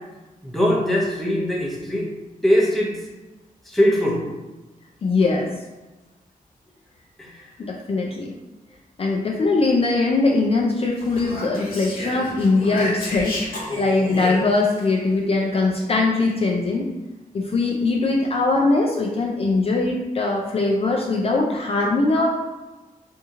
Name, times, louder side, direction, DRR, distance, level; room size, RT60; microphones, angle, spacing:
voice 1, 0.4-2.1 2.4-3.0 3.7-4.2 7.2-7.5, equal, ahead, -4 dB, 0.6 m, -21 dB
voice 2, 5.0-5.5 7.6-8.3 9.0-16.9 17.3-22.3, left 3 dB, 40° left, -1 dB, 0.4 m, -21 dB
Speech, 11.0-14.9, left 1 dB, 85° left, 1.0 m, -31 dB
2.8 x 2.6 x 3.6 m, 1.1 s
wide cardioid pair, 170°, 15 cm